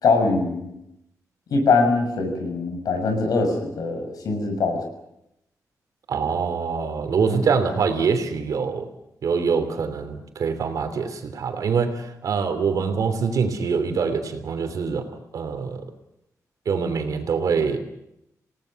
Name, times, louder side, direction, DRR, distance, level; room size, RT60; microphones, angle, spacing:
voice 1, 0.0-0.7 1.5-4.8 7.2-7.4, left 3 dB, 90° left, 5 dB, 6.4 m, -22 dB
voice 2, 6.1-8.9 9.2-15.1 15.3-15.8 16.6-17.8, right 5 dB, 70° right, 7 dB, 3.1 m, -24 dB
28.0 x 18.0 x 6.6 m, 0.83 s
wide cardioid pair, 180°, 6 cm